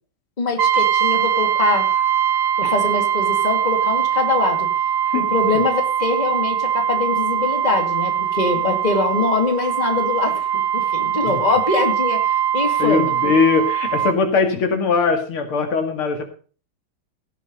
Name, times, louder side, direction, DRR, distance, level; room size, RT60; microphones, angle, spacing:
voice 1, 0.4-1.9 2.6-4.7 5.1-13.1, left 3 dB, 20° left, 5 dB, 2.2 m, -23 dB
Brass instrument, 0.6-14.2, right 9 dB, 60° right, 0.9 m, -21 dB
voice 2, 12.8-16.2, left 5 dB, 90° left, 6 dB, 3.0 m, -20 dB
16.5 x 7.6 x 5.3 m, 0.39 s
omnidirectional pair, 2.3 m